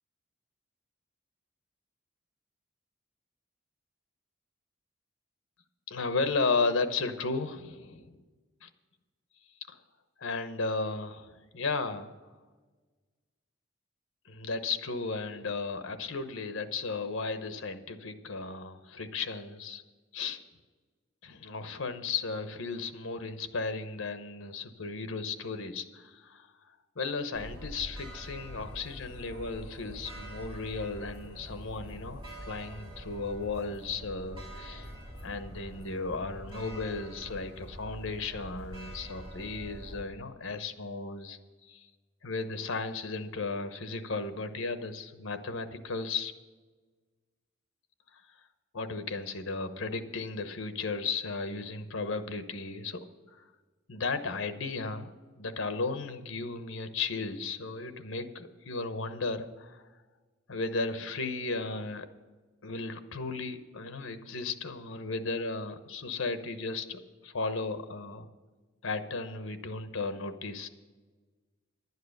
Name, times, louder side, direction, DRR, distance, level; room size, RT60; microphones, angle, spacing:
voice 1, 5.9-8.2 8.6-8.7 9.7-9.8 10.2-12.1 14.3-19.8 20.1-20.4 21.2-34.9 35.2-41.9 42.2-46.3 48.1-48.2 48.7-53.0 53.3-53.5 53.9-55.1 55.4-59.9 60.5-62.1 62.6-68.3 68.8-70.7, left 4 dB, 85° left, 10 dB, 1.0 m, -35 dB
sound 1, 27.3-40.0, equal, 25° right, 3.6 m, -45 dB
11.0 x 9.4 x 6.5 m, 1.3 s
head